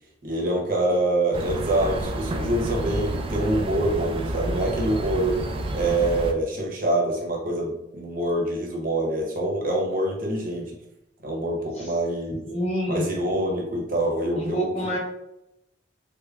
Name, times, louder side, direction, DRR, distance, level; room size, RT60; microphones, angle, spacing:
voice 1, 0.2-5.4 5.7-10.8 11.2-12.4 12.9-14.9, right 1 dB, 50° right, -1 dB, 0.9 m, -25 dB
sound 1, 1.3-6.3, right 1 dB, 30° right, 0.3 m, -29 dB
voice 2, 12.4-13.0 14.3-15.0, equal, 35° left, -4 dB, 1.3 m, -28 dB
5.3 x 2.1 x 2.3 m, 0.84 s
head